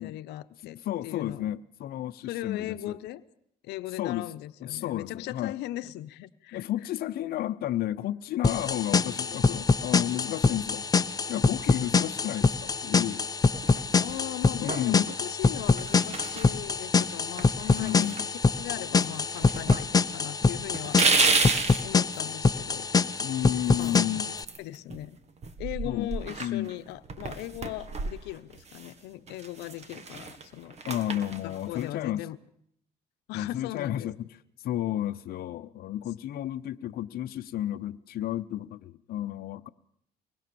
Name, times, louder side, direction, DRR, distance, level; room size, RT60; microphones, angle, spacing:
voice 1, 0.0-1.5 2.2-3.2 3.6-6.7 14.0-21.2 21.8-23.1 23.8-24.0 24.6-25.2 25.6-30.8 31.4-32.4 33.3-34.1, left 15 dB, 90° left, 0.9 m, -39 dB
voice 2, 0.8-2.9 4.0-4.3 4.6-5.5 6.5-10.8 11.3-13.2 14.5-15.1 17.8-18.3 23.2-24.2 25.8-26.1 26.4-26.7 30.8-32.2 33.3-34.1 34.6-39.7, left 12 dB, 65° left, 0.8 m, -32 dB
sound 1, 8.4-24.4, left 4 dB, 20° left, 0.9 m, -25 dB
sound 2, 13.5-14.2 14.7-15.2 15.7-16.5 17.0-17.1 17.4-18.7 19.0-19.8 20.1-20.2 20.7-21.8 23.7-25.1 25.4-28.9 29.3-31.9, right 4 dB, 40° right, 2.1 m, -31 dB
24.0 x 20.0 x 7.0 m
cardioid pair, 110°, 17 cm